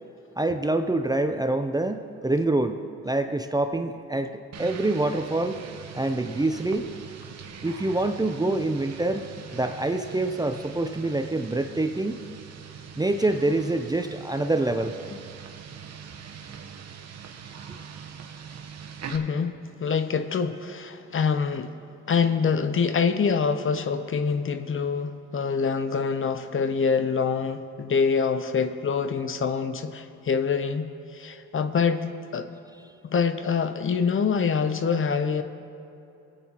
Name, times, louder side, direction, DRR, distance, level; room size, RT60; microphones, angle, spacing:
voice 1, 0.4-5.6 5.9-6.9 7.6-12.2 13.0-15.0, right 2 dB, 15° right, 7 dB, 0.5 m, -26 dB
sound 1, 4.5-19.2, right 7 dB, 60° right, 1.1 m, -42 dB
voice 2, 19.1-21.7 22.1-32.5 33.1-35.4, left 5 dB, 40° left, 9 dB, 0.8 m, -25 dB
19.5 x 9.2 x 3.0 m, 2.8 s
supercardioid pair, 70°, 31 cm